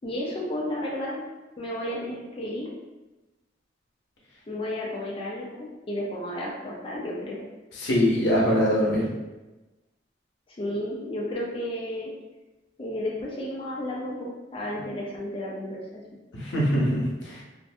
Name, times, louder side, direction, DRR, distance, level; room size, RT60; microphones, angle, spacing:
voice 1, 0.0-1.2 1.6-2.7 4.5-7.4 10.5-12.1 12.8-15.8, left 1 dB, 30° left, -5 dB, 0.4 m, -32 dB
voice 2, 7.8-9.1 16.3-17.4, equal, 85° left, -4 dB, 0.7 m, -23 dB
2.5 x 2.1 x 2.6 m, 1.1 s
head